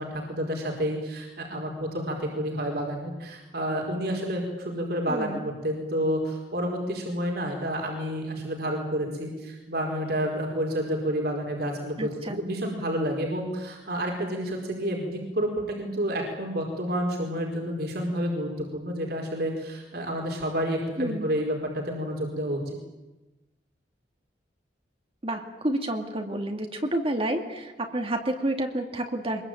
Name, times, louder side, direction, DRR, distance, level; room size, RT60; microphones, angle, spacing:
voice 1, 0.0-22.7, equal, 60° right, 1 dB, 4.7 m, -30 dB
voice 2, 5.1-5.5 12.0-12.4 21.0-21.3 25.2-29.4, right 1 dB, 30° right, 4 dB, 2.3 m, -29 dB
24.0 x 22.0 x 9.2 m, 1.1 s
head